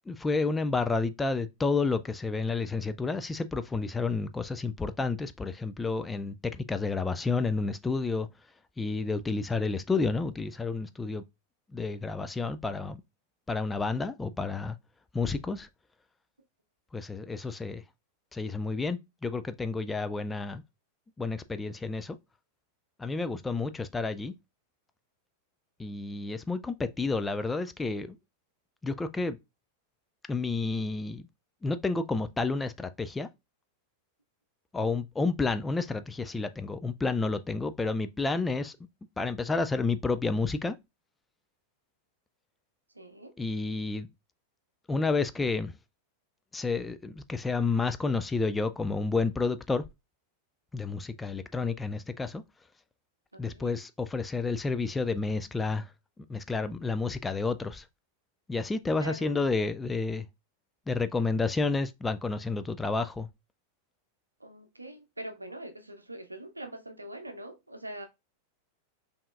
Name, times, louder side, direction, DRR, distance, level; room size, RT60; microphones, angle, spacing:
voice 1, 0.1-8.3 8.8-11.2 11.7-13.0 13.5-14.8 15.1-15.7 16.9-17.8 18.3-20.6 21.2-22.2 23.0-24.3 25.8-28.2 28.8-29.4 30.3-31.2 31.6-33.3 34.7-38.8 39.2-40.8 43.4-44.1 44.9-45.7 46.5-49.8 50.7-52.4 53.4-55.9 56.2-57.9 58.5-60.3 60.9-63.3, left 3 dB, 10° left, 0.3 m, -30 dB
voice 2, 42.9-43.3 51.6-51.7 53.3-53.7 59.0-59.4 64.4-68.1, right 1 dB, 85° right, 0.6 m, -43 dB
5.5 x 2.8 x 2.4 m
figure-of-eight pair, 90°, 0 cm